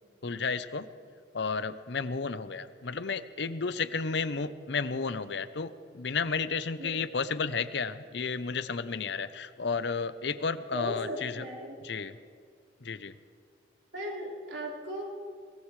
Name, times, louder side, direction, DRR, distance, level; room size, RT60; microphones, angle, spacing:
voice 1, 0.2-0.9 1.3-11.4 11.8-12.2 12.8-13.2, left 5 dB, 65° left, 13 dB, 0.6 m, -32 dB
voice 2, 10.7-11.8 13.9-15.0, equal, 85° right, -3 dB, 4.3 m, -37 dB
23.0 x 19.0 x 3.2 m, 2.2 s
head